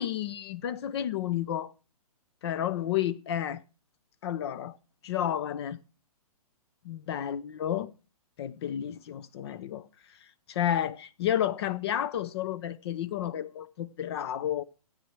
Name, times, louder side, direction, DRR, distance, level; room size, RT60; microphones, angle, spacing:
voice 1, 0.0-1.7 2.4-3.6 4.2-4.8 5.0-5.8 6.8-7.9 8.4-9.8 10.5-14.6, left 10 dB, 45° left, 0.7 m, -31 dB
13.5 x 8.9 x 4.6 m
hypercardioid pair, 135°, 19 cm